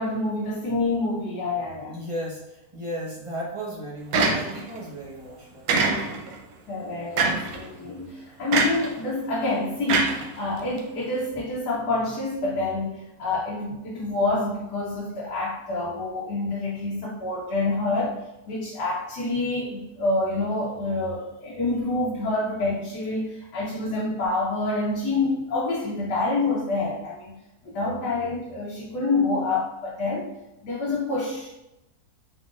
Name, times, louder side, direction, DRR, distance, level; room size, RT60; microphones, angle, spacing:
voice 1, 0.0-1.9 6.7-18.2 18.4-27.3 27.6-30.3 30.6-31.5, left 2 dB, 90° left, -7 dB, 1.5 m, -27 dB
voice 2, 1.9-5.7, equal, 25° right, -5 dB, 0.8 m, -35 dB
sound 1, 4.1-4.8 5.7-6.3 7.2-7.6 8.5-8.9 9.9-10.8, right 4 dB, 70° right, 1.1 m, -23 dB
4.6 x 3.7 x 2.4 m, 0.91 s
omnidirectional pair, 1.7 m